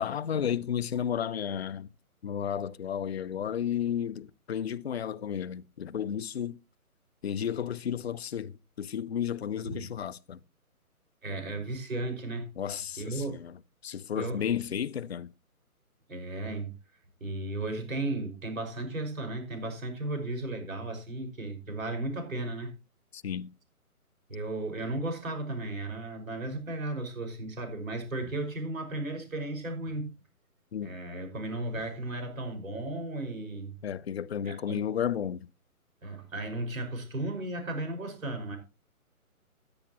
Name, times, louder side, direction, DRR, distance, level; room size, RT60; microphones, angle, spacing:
voice 1, 0.0-1.9 2.2-6.6 7.2-10.4 12.6-15.3 23.1-23.5 30.7-30.9 33.8-35.5, left 9 dB, 45° left, 0.6 m, -33 dB
voice 2, 11.2-12.5 13.0-13.4 14.1-14.4 16.1-16.7 17.2-22.7 24.3-30.1 30.8-33.7 34.4-34.8 36.0-38.6, right 2 dB, 65° right, 5.6 m, -35 dB
14.0 x 10.5 x 3.0 m
figure-of-eight pair, 140°, 44 cm